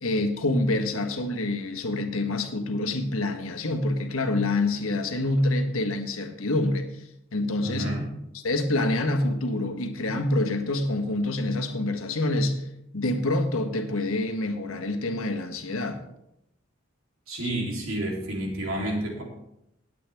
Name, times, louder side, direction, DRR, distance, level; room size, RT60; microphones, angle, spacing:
voice 1, 0.0-7.0 7.3-7.9 8.4-12.6 12.9-16.0 17.4-17.5, left 2 dB, 90° left, 6 dB, 1.4 m, -26 dB
voice 2, 7.6-8.1 17.3-19.2, right 1 dB, 80° right, -1 dB, 3.4 m, -30 dB
18.0 x 8.5 x 3.5 m, 0.82 s
head